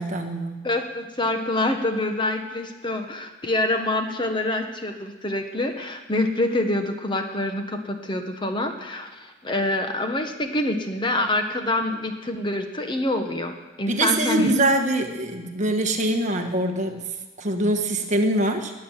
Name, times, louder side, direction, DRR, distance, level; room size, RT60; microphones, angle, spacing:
voice 1, 0.0-0.6 13.9-18.7, right 1 dB, 40° right, 4 dB, 1.4 m, -24 dB
voice 2, 0.6-13.5 13.8-14.7, left 1 dB, 25° left, 5 dB, 1.2 m, -26 dB
20.5 x 8.6 x 7.4 m, 1.2 s
head